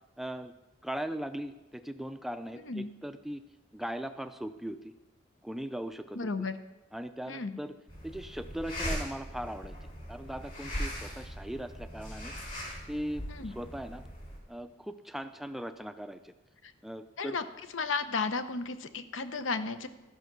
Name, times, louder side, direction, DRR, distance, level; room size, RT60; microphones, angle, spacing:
voice 1, 0.2-0.5 0.8-3.4 3.7-4.9 5.4-6.5 6.9-7.7 8.0-9.8 10.1-12.3 12.9-14.0 14.5-16.3 16.8-17.4, right 1 dB, ahead, 10 dB, 0.3 m, -39 dB
voice 2, 6.1-6.6 7.3-7.6 13.3-13.5 16.6-16.7 17.2-17.4 17.7-19.9, left 4 dB, 85° left, 11 dB, 0.7 m, -33 dB
sound 1, 7.9-14.4, equal, 45° left, 3.2 m, -39 dB
13.5 x 5.7 x 6.0 m, 1.1 s
head